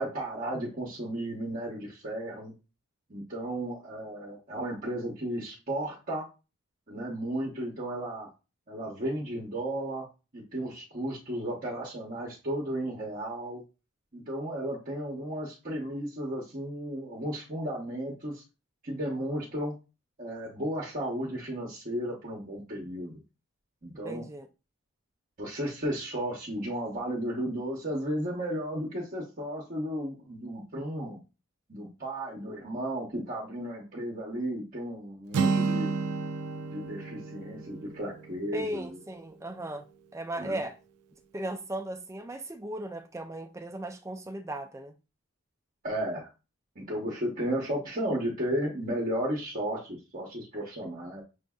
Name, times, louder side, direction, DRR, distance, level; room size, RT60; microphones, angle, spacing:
voice 1, 0.0-2.5 3.1-6.2 6.9-8.3 8.7-10.1 10.3-13.6 14.1-18.4 18.8-19.7 20.2-23.2 23.8-24.2 25.4-31.2 31.7-35.9 36.7-39.0 40.3-40.6 45.8-46.3 46.8-51.2, right 1 dB, 40° right, 0.8 m, -34 dB
voice 2, 24.0-24.5 38.5-39.8 40.1-40.7 41.3-44.9, right 1 dB, 15° right, 0.4 m, -36 dB
Acoustic guitar, 35.3-39.3, right 4 dB, 85° right, 0.4 m, -31 dB
6.2 x 2.6 x 2.3 m
head